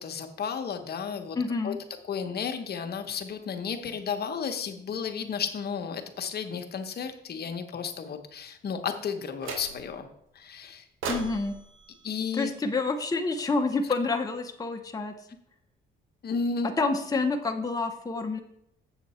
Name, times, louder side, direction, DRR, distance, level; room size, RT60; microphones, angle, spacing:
voice 1, 0.0-1.4 1.6-1.7 2.1-10.1 10.3-10.8 12.0-12.5 16.2-16.7, left 6 dB, 55° left, 6 dB, 1.0 m, -33 dB
voice 2, 1.4-1.8 11.1-11.6 12.3-15.1 16.6-18.4, left 3 dB, 20° left, 4 dB, 0.7 m, -28 dB
sound 1, 9.4-10.1 11.0-13.3, right 4 dB, 85° right, 1.3 m, -39 dB
7.7 x 6.9 x 4.2 m, 0.77 s
cardioid pair, 90°, 20 cm